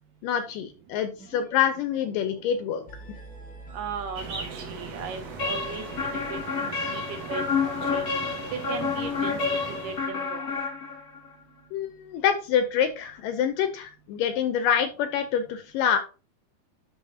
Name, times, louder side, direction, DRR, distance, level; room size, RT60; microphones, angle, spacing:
voice 1, 0.2-2.8 11.7-16.0, left 8 dB, 80° left, 9 dB, 2.1 m, -26 dB
sound 1, 1.2-1.6 1.8-6.8, equal, 10° left, 0.4 m, -46 dB
voice 2, 3.7-5.9 6.3-7.0 7.3-8.0 8.5-10.5, right 6 dB, 75° right, 7 dB, 2.2 m, -37 dB
sound 2, 4.1-10.1, right 4 dB, 55° right, 2.0 m, -39 dB
sound 3, 5.4-11.3, left 5 dB, 40° left, 1.3 m, -29 dB
12.0 x 4.1 x 2.8 m, 0.33 s
omnidirectional pair, 4.4 m